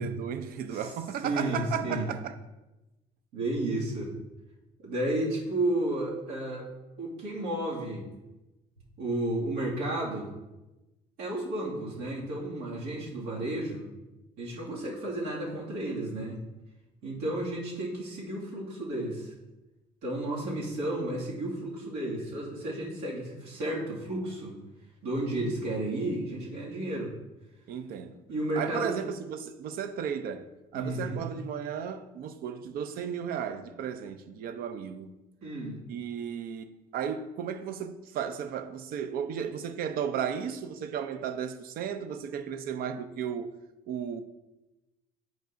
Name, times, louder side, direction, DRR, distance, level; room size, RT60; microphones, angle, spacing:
voice 1, 0.0-2.3 27.7-28.2 28.6-35.1 35.9-43.5 43.9-44.2, right 8 dB, 65° right, 0.6 m, -34 dB
voice 2, 1.2-2.1 3.3-4.1 4.8-6.7 7.0-8.0 9.0-10.3 11.2-13.9 14.4-16.4 17.0-19.3 20.0-24.6 25.0-27.1 28.3-29.0 30.7-31.2 35.4-35.8, right 1 dB, 90° right, 2.1 m, -32 dB
8.9 x 5.2 x 2.6 m
cardioid pair, 120°, 16 cm